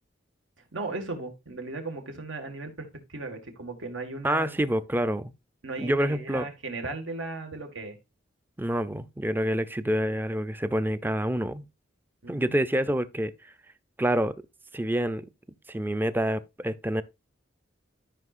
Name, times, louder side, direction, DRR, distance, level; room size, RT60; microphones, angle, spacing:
voice 1, 0.7-4.6 5.6-8.0 12.2-12.6, right 2 dB, 85° right, 1.9 m, -36 dB
voice 2, 4.2-5.3 5.8-6.5 8.6-11.6 12.3-13.3 14.0-14.3 14.7-15.3 15.7-17.0, right 1 dB, 10° right, 0.5 m, -27 dB
13.5 x 5.5 x 2.5 m
head